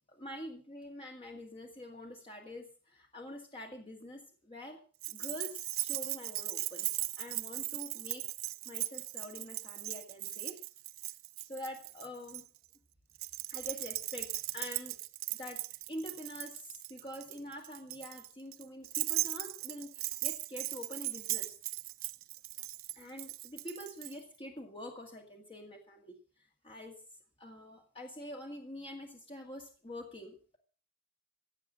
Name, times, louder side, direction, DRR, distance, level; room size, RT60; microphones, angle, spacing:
voice 1, 0.1-4.8 5.1-6.9 7.2-8.2 8.7-10.6 11.5-12.4 13.5-14.3 14.5-14.9 15.3-15.6 15.9-21.5 22.9-26.2 26.6-26.9 27.4-30.6, left 1 dB, 25° left, 1 dB, 1.9 m, -46 dB
Keys jangling, 5.0-12.4 13.2-24.1, right 18 dB, 75° right, 0.6 m, -38 dB
16.0 x 8.8 x 7.4 m, 0.43 s
head